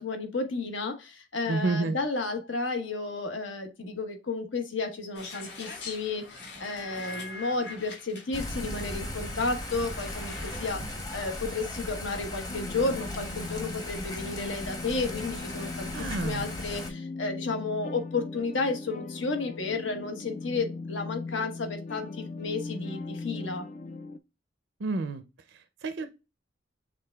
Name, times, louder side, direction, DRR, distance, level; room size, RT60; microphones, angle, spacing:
voice 1, 0.0-15.9 16.2-23.7, left 3 dB, 80° left, 5 dB, 1.2 m, -32 dB
voice 2, 1.5-2.0 15.9-16.5 24.8-26.1, right 3 dB, 65° right, 10 dB, 0.5 m, -30 dB
sound 1, 5.1-10.7, left 3 dB, 60° left, 1.8 m, -43 dB
Thunder / Rain, 8.3-16.9, left 1 dB, 20° left, 0.9 m, -37 dB
sound 2, 12.5-24.2, left 3 dB, 40° left, 0.3 m, -39 dB
6.5 x 3.5 x 2.3 m, 0.27 s
head